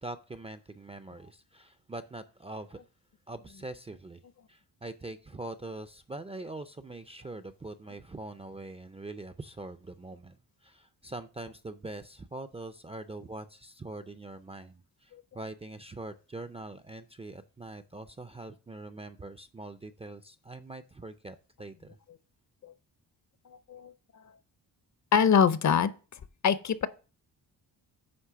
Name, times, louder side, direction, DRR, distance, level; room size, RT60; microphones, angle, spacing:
voice 1, 0.0-2.8 3.3-4.2 4.5-22.0, right 2 dB, 15° right, 0.4 m, -43 dB
voice 2, 23.7-24.2 25.1-25.9 26.4-26.9, left 7 dB, 45° left, 0.6 m, -24 dB
9.7 x 3.2 x 6.7 m
wide cardioid pair, 125°, 40 cm